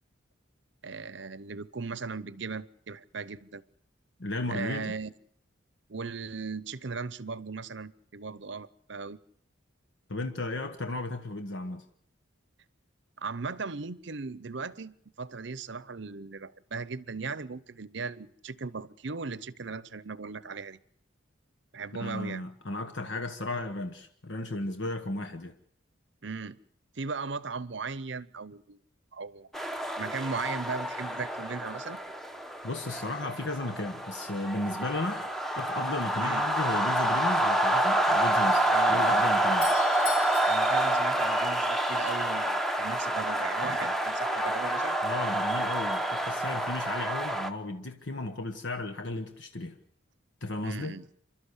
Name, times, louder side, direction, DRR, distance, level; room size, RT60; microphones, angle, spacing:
voice 1, 0.8-3.6 4.5-5.1 5.9-9.2 13.2-20.8 21.7-22.4 26.2-26.6 26.9-28.8 29.1-29.7 30.0-32.0 36.2-36.4 38.7-39.2 40.5-45.0 50.6-51.1, right 4 dB, 60° right, 0.8 m, -37 dB
voice 2, 4.2-5.0 10.1-11.8 22.0-25.5 32.6-35.2 35.6-39.7 45.0-49.8 50.4-51.0, left 2 dB, 65° left, 1.3 m, -34 dB
sound 1, 29.5-47.5, right 1 dB, ahead, 0.9 m, -28 dB
Doorbell, 39.4-42.0, left 8 dB, 40° left, 4.6 m, -42 dB
28.0 x 12.5 x 8.2 m
head